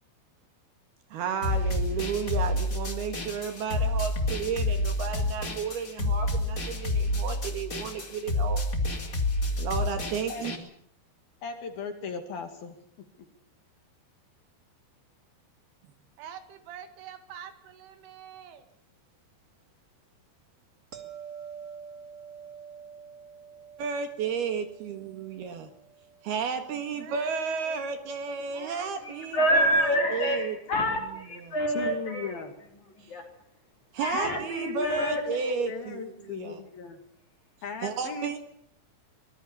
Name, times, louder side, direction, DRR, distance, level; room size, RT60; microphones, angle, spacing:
voice 1, 1.1-8.6 9.6-10.6 23.8-25.7 26.2-30.5 31.5-31.6 33.9-36.6 37.8-38.4, right 6 dB, 60° right, 7 dB, 3.2 m, -32 dB
sound 1, 1.4-10.6, left 2 dB, 25° left, 2.2 m, -29 dB
voice 2, 11.4-12.7 31.7-32.5 34.1-35.4 35.7-37.0 37.6-38.4, left 5 dB, 55° left, 6 dB, 3.7 m, -37 dB
voice 3, 16.2-18.6 27.0-28.1 28.5-29.3, right 9 dB, 80° right, 9 dB, 4.6 m, -46 dB
sound 2, 20.9-27.9 33.2-33.3, right 7 dB, 35° right, 1.6 m, -47 dB
voice 4, 28.7-33.2 34.0-35.7, equal, 40° left, 2 dB, 5.5 m, -28 dB
24.5 x 20.0 x 7.2 m, 0.68 s
omnidirectional pair, 5.6 m